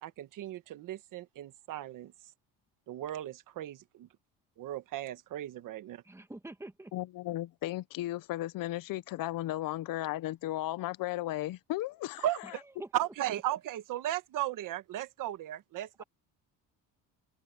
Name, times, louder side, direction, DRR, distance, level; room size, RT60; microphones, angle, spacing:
voice 1, 0.0-2.1 2.9-4.1 4.6-6.0 12.2-12.4 12.9-16.0, right 12 dB, 65° right, 1.4 m, -36 dB
voice 2, 6.0-6.9 12.5-12.9 16.0-16.1, right 2 dB, 10° right, 2.2 m, -46 dB
voice 3, 6.9-12.2, left 15 dB, 70° left, 0.9 m, -35 dB
cardioid pair, 160°, 34 cm